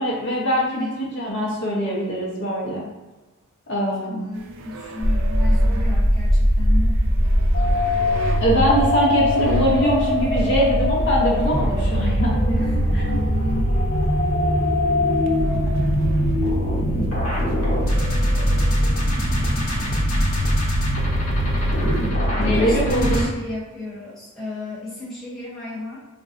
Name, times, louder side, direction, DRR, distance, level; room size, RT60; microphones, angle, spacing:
voice 1, 0.0-2.8 3.7-4.3 8.4-12.6 12.9-13.0 22.4-23.3, right 1 dB, 50° left, -3 dB, 0.7 m, -22 dB
voice 2, 0.6-1.0 4.0-7.0 12.6-13.6 22.3-26.0, left 2 dB, ahead, -9 dB, 0.6 m, -33 dB
sound 1, 4.3-22.1, right 4 dB, 60° right, 0.3 m, -39 dB
sound 2, 5.0-23.2, equal, 85° left, 0.9 m, -20 dB
3.8 x 2.2 x 2.5 m, 1.1 s
head